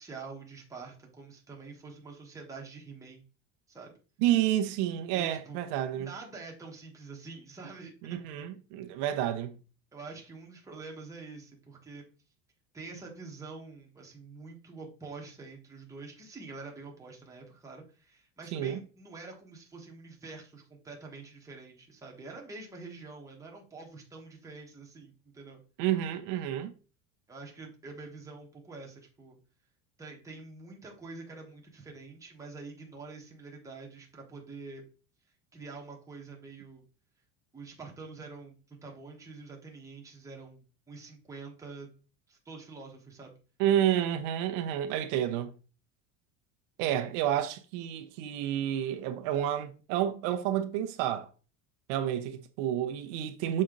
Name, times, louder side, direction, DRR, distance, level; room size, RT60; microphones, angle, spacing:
voice 1, 0.0-3.2 3.7-3.9 5.1-5.6 5.9-8.4 9.9-12.1 12.7-25.6 27.3-29.4 30.0-34.8 35.5-36.8 37.5-41.9 42.3-43.4, right 3 dB, 10° right, 1.2 m, -46 dB
voice 2, 4.2-6.1 8.0-9.6 18.5-18.8 25.8-26.7 43.6-45.5 46.8-51.3 51.9-53.6, right 11 dB, 75° right, 0.8 m, -30 dB
6.4 x 4.3 x 3.8 m
cardioid pair, 165°, 36 cm